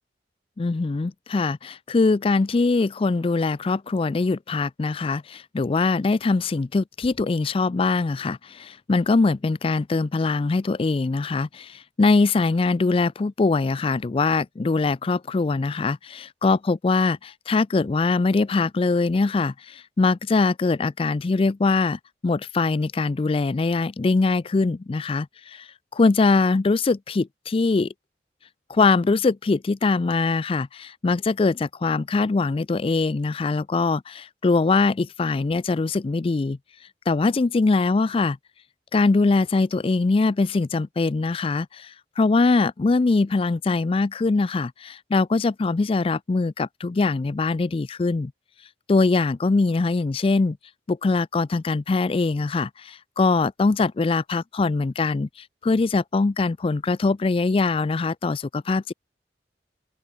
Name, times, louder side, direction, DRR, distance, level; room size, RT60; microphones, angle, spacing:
voice 1, 0.6-27.9 28.7-36.6 37.1-38.4 38.9-48.3 48.9-50.6 50.9-55.3 55.6-58.9, left 3 dB, 30° left, 0.4 m, -22 dB
open air
head